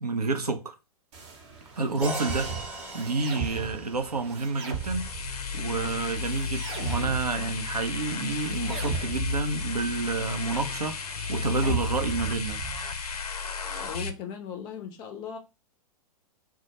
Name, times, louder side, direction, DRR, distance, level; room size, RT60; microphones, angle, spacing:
voice 1, 0.0-0.7 1.8-5.1 5.5-12.6, right 3 dB, 85° right, 0.5 m, -29 dB
sound 1, 1.1-13.1, right 6 dB, 45° right, 0.7 m, -38 dB
sound 2, 2.0-5.9, right 1 dB, 10° right, 0.7 m, -40 dB
sound 3, 4.7-14.1, left 5 dB, 75° left, 0.5 m, -33 dB
voice 2, 13.8-15.4, left 7 dB, 20° left, 0.4 m, -38 dB
2.2 x 2.0 x 2.8 m
figure-of-eight pair, 110°, 19 cm